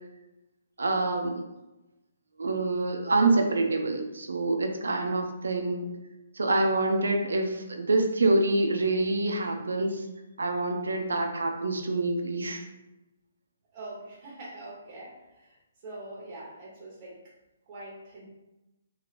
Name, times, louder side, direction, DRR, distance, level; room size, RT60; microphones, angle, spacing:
voice 1, 0.8-1.4 2.4-5.9 6.3-10.1 10.4-12.7, right 2 dB, 80° right, 4 dB, 0.5 m, -26 dB
voice 2, 13.7-17.4 17.7-18.3, right 2 dB, 40° right, -7 dB, 1.1 m, -44 dB
3.0 x 2.8 x 2.5 m, 0.98 s
hypercardioid pair, 140°, 0 cm